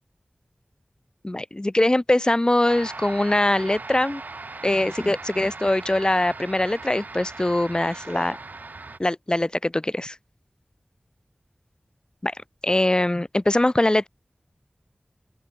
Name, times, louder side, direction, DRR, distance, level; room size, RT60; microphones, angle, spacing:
voice 1, 1.2-4.2 4.6-8.4 9.0-10.1 12.2-12.3 12.6-14.1, left 1 dB, 25° left, 1.3 m, -22 dB
sound 1, 2.6-9.0, right 3 dB, 70° right, 1.2 m, -39 dB
open air
wide cardioid pair, 60°, 3 cm